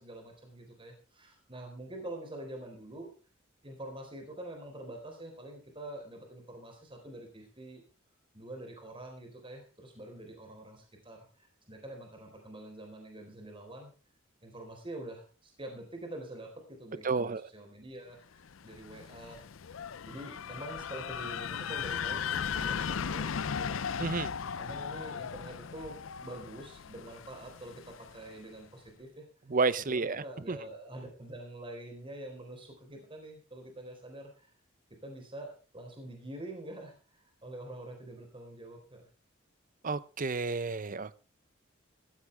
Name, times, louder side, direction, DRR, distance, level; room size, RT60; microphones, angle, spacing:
voice 1, 0.0-3.1 3.6-7.8 8.3-13.9 14.4-18.2 18.6-19.5 20.0-23.8 24.6-26.0 26.2-29.2 29.8-34.5 35.0-39.1, right 1 dB, 25° right, 4.2 m, -46 dB
voice 2, 17.0-17.4 24.0-24.3 29.5-30.6 39.8-41.2, right 4 dB, 40° right, 0.7 m, -31 dB
sound 1, 18.5-28.3, left 7 dB, 75° left, 0.5 m, -37 dB
15.0 x 14.5 x 3.4 m
head